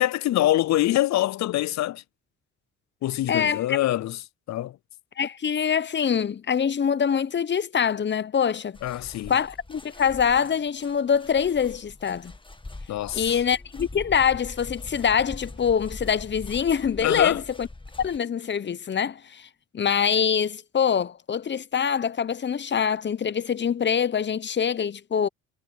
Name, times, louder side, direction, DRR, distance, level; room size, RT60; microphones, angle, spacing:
voice 1, 0.0-2.0 3.0-4.2 4.5-4.8 8.8-9.3 12.9-13.3 17.0-17.4, left 14 dB, 55° left, 0.5 m, -24 dB
voice 2, 3.3-3.8 5.2-8.8 9.3-12.3 13.1-17.7 18.0-19.5 19.7-25.3, left 7 dB, 35° left, 0.8 m, -24 dB
sound 1, 8.7-18.2, left 2 dB, 15° left, 1.8 m, -42 dB
supercardioid pair, 70°, 33 cm